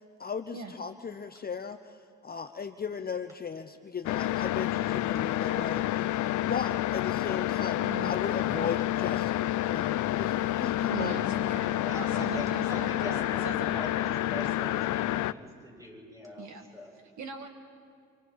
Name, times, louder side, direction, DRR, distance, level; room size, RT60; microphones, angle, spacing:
voice 1, 0.2-1.9 2.2-6.1 6.5-11.1, left 6 dB, 30° left, 7 dB, 0.8 m, -36 dB
sound 1, 4.0-15.3, left 14 dB, 75° left, 0.6 m, -29 dB
voice 2, 7.8-8.1 8.5-8.8 10.9-14.1 14.3-15.1 16.4-16.7 17.2-17.5, right 5 dB, 70° right, 5 dB, 1.8 m, -41 dB
voice 3, 11.8-13.4 13.7-16.9, equal, 10° right, -2 dB, 7.7 m, -42 dB
28.5 x 27.0 x 4.7 m, 2.2 s
cardioid pair, 90°, 30 cm